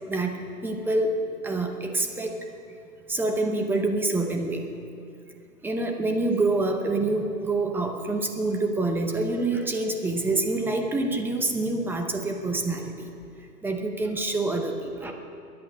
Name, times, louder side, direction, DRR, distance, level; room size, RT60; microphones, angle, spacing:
voice 1, 0.6-2.4 3.1-4.6 5.6-13.1 13.6-15.1, right 2 dB, 5° right, 3 dB, 0.7 m, -26 dB
22.5 x 8.6 x 6.3 m, 2.5 s
hypercardioid pair, 140°, 45 cm